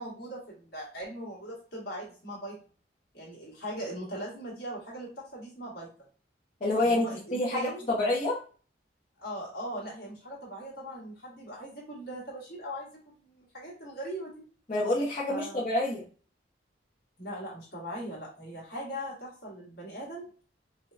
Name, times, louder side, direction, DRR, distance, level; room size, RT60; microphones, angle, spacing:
voice 1, 0.0-2.6 3.1-5.9 6.8-7.9 9.2-14.5 15.3-15.7 17.2-20.3, equal, 50° left, -5 dB, 1.9 m, -40 dB
voice 2, 6.6-8.4 14.7-16.0, left 2 dB, 35° left, -9 dB, 1.0 m, -28 dB
5.2 x 2.3 x 2.6 m, 0.39 s
head